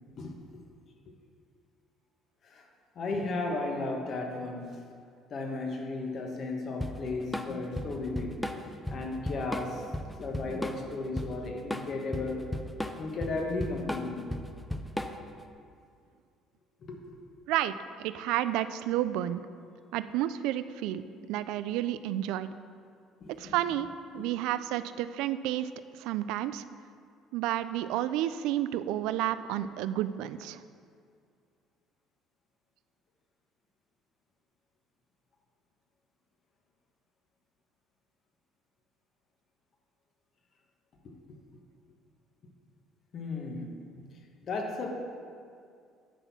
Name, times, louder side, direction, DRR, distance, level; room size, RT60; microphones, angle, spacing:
voice 1, 0.2-0.6 1.1-1.2 2.4-2.6 2.9-5.0 5.3-12.6 13.0-14.4 16.8-17.2 23.2-23.6 24.1-24.4 41.0-41.1 43.1-44.1 44.4-44.9, left 3 dB, 45° left, 2 dB, 1.3 m, -35 dB
Drum kit / Drum, 6.8-15.4, left 1 dB, 5° left, 0.4 m, -35 dB
voice 2, 17.5-19.4 19.9-21.0 21.3-22.5 23.3-26.7 27.3-30.6, right 12 dB, 85° right, 13 dB, 0.3 m, -31 dB
10.5 x 4.2 x 7.0 m, 2.3 s
cardioid pair, 135°, 0 cm